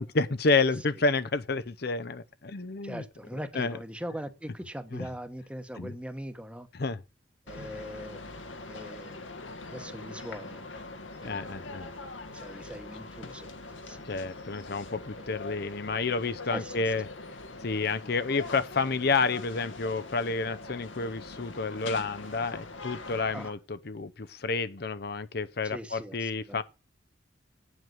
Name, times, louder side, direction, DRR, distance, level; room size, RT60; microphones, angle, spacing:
voice 1, 0.0-3.0 3.5-3.8 4.9-5.1 5.8-5.9 6.7-7.0 7.6-7.7 11.2-11.9 14.0-17.1 17.6-26.6, left 4 dB, 55° left, 0.7 m, -30 dB
voice 2, 2.8-6.7 7.5-8.2 8.7-9.3 9.7-10.6 11.2-11.9 12.3-13.5 13.8-14.1 15.2-15.3 16.5-16.9 23.3-23.5 25.6-26.6, equal, 5° right, 1.0 m, -41 dB
sound 1, 7.5-23.5, left 3 dB, 90° left, 1.9 m, -42 dB
9.0 x 8.0 x 7.7 m
head